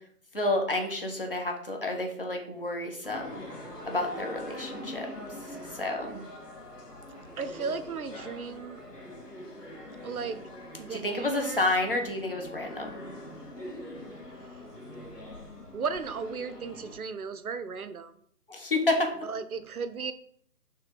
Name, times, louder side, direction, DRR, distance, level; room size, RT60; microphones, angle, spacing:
voice 1, 0.3-3.4 3.8-5.1 5.7-6.2 10.9-13.0 18.5-19.1, left 2 dB, 35° left, 3 dB, 0.7 m, -30 dB
sound 1, 3.0-17.0, left 1 dB, 80° left, 1.7 m, -43 dB
voice 2, 7.4-8.8 10.0-10.5 10.8-11.7 14.3-14.4 15.7-18.1 19.2-20.1, right 5 dB, 65° right, 11 dB, 0.5 m, -35 dB
3.4 x 3.2 x 4.7 m, 0.64 s
figure-of-eight pair, 150°, 47 cm